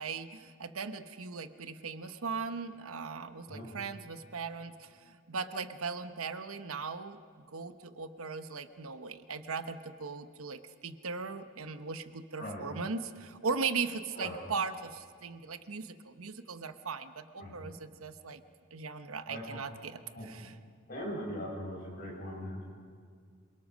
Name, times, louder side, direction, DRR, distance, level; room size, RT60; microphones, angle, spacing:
voice 1, 0.0-7.2 7.5-18.4 18.7-20.6, right 5 dB, 80° right, 10 dB, 1.0 m, -38 dB
voice 2, 20.9-22.6, equal, 40° left, -2 dB, 7.5 m, -40 dB
26.5 x 23.5 x 6.3 m, 2.1 s
head